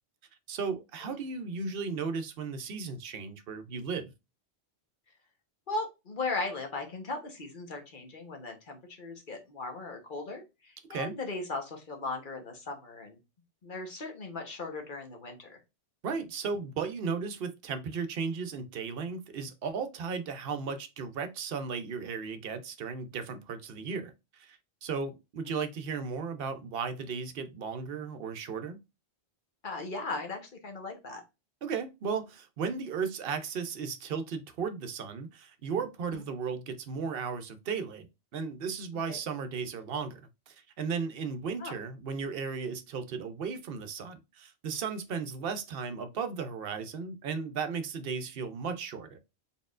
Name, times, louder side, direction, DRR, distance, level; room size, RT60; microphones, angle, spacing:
voice 1, 0.5-4.1 10.9-11.1 16.0-28.8 31.6-38.1 38.3-40.2 40.5-49.2, right 5 dB, 65° right, 0.8 m, -35 dB
voice 2, 5.7-13.2 13.6-15.6 25.4-25.5 29.6-31.2 36.1-36.2 39.1-39.2 41.6-41.8, left 3 dB, 50° left, 1.2 m, -38 dB
4.3 x 3.6 x 2.4 m
omnidirectional pair, 1.1 m